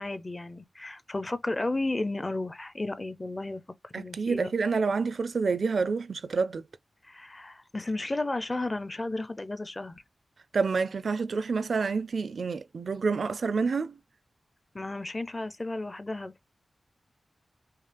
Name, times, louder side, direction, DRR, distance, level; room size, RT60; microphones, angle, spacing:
voice 1, 0.0-4.5 7.1-10.0 14.7-16.3, left 2 dB, 25° left, 0.6 m, -33 dB
voice 2, 3.9-6.6 10.5-14.0, right 4 dB, 70° right, 0.4 m, -28 dB
5.5 x 2.0 x 3.4 m
wide cardioid pair, 110°, 0 cm